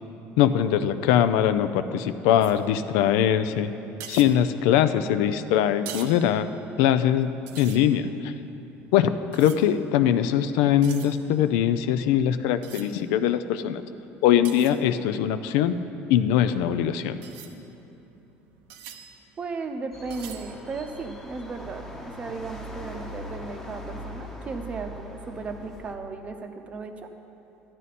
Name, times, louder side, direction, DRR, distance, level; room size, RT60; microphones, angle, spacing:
voice 1, 0.4-3.7 4.1-6.5 6.8-7.3 7.6-8.3 8.9-13.8 14.2-15.7 16.1-17.2, left 10 dB, 85° left, 11 dB, 0.4 m, -22 dB
sound 1, 2.4-3.1 3.5-3.6 3.9-5.3 5.7-7.2 7.5-10.1 10.5-15.4 16.3-21.4, right 9 dB, 85° right, 0.8 m, -46 dB
voice 2, 19.4-27.1, right 4 dB, 25° right, 6 dB, 0.7 m, -36 dB
sound 2, 19.9-26.0, equal, 5° left, 0.9 m, -40 dB
12.0 x 11.0 x 4.2 m, 2.9 s
cardioid pair, 155°, 5 cm